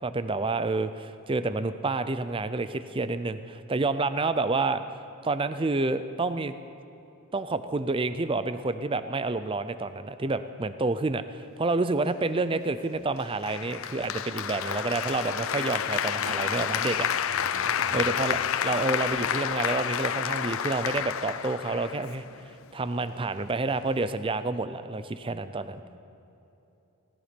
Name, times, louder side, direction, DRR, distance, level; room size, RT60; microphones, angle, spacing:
voice 1, 0.0-4.8 5.2-6.5 7.3-17.1 17.9-18.4 18.6-22.2 22.7-25.8, right 3 dB, 25° right, 12 dB, 0.5 m, -29 dB
Applause, 13.4-22.4, left 8 dB, 65° left, 0.5 m, -29 dB
voice 2, 17.3-18.1 25.7-26.0, equal, 60° right, 1 dB, 2.4 m, -47 dB
17.5 x 15.5 x 5.2 m, 2.9 s
head